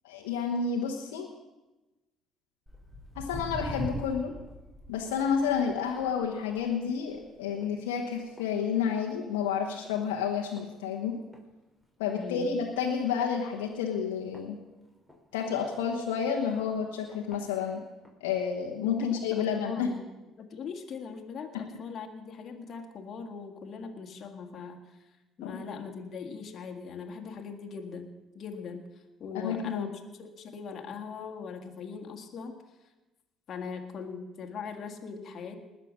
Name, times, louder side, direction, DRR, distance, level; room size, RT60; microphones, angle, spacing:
voice 1, 0.0-1.3 3.2-4.3 4.9-11.1 12.0-14.6 15.3-17.8 18.2-19.9 25.4-25.6 29.3-29.9, left 7 dB, 85° left, 0 dB, 1.2 m, -30 dB
Walk footsteps, 2.7-9.3 9.6-10.0 10.6-10.7 11.3-11.4 11.8-11.9 12.1-12.2 12.8-12.9 13.6-15.2 15.8-15.9 16.6-16.7 17.1-17.4 18.0-18.1, right 1 dB, 5° right, 4.5 m, -42 dB
voice 2, 12.1-12.5 19.1-20.0 20.4-25.1 25.4-28.8 29.2-29.9 30.2-32.6 33.5-35.6, left 5 dB, 50° left, 3 dB, 1.8 m, -40 dB
20.0 x 6.8 x 6.3 m, 1.1 s
hypercardioid pair, 60°, 0 cm